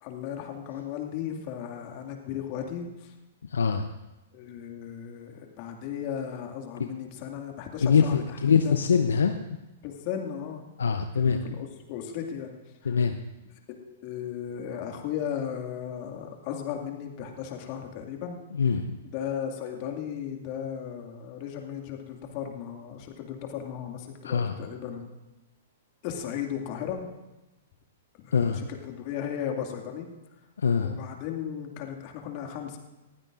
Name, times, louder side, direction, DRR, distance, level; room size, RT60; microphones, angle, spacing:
voice 1, 0.0-3.1 4.3-8.7 9.8-10.6 11.1-12.5 12.8-13.0 13.8-18.4 19.0-25.1 26.0-27.1 28.2-30.1 30.8-32.8, left 9 dB, 45° left, 3 dB, 2.2 m, -36 dB
voice 2, 3.5-3.9 7.8-9.3 10.8-11.4 12.8-13.1 18.5-19.0 24.2-24.5 28.3-28.6 30.6-30.9, left 6 dB, 75° left, 7 dB, 0.7 m, -23 dB
20.0 x 15.5 x 2.6 m, 1.0 s
figure-of-eight pair, 110°, 0 cm